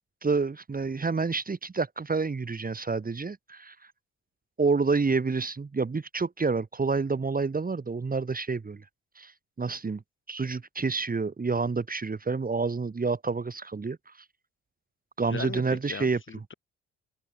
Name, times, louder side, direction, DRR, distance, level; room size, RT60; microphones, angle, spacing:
voice 1, 0.2-3.7 4.6-8.8 9.1-9.3 9.6-10.0 10.3-14.1 15.2-16.2, right 4 dB, 25° right, 1.7 m, -28 dB
voice 2, 15.3-16.5, left 5 dB, 40° left, 2.5 m, -38 dB
open air
supercardioid pair, 60°, 32 cm